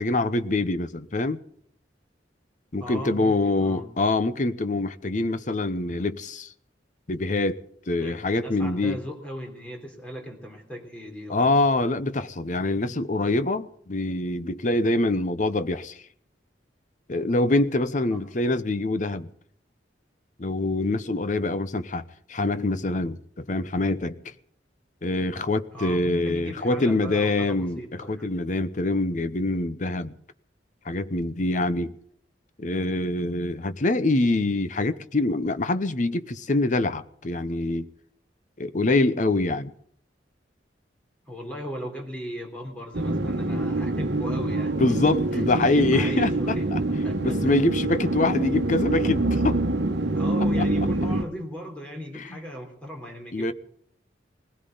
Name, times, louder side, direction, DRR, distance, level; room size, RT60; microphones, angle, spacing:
voice 1, 0.0-1.4 2.7-6.5 7.1-7.6 7.9-9.0 11.3-16.0 17.1-19.3 20.4-22.0 22.3-24.3 25.0-30.1 30.8-32.0 32.6-37.9 38.6-39.7 44.8-46.8 47.2-49.6 52.2-52.4 53.3-53.5, left 2 dB, 45° left, 0.8 m, -25 dB
voice 2, 2.8-3.9 8.0-11.6 18.1-18.3 25.7-28.3 41.3-45.0 45.3-47.6 50.1-53.5, equal, 5° left, 3.6 m, -37 dB
sound 1, 42.9-51.2, right 2 dB, 70° right, 1.2 m, -25 dB
20.0 x 16.0 x 4.0 m
head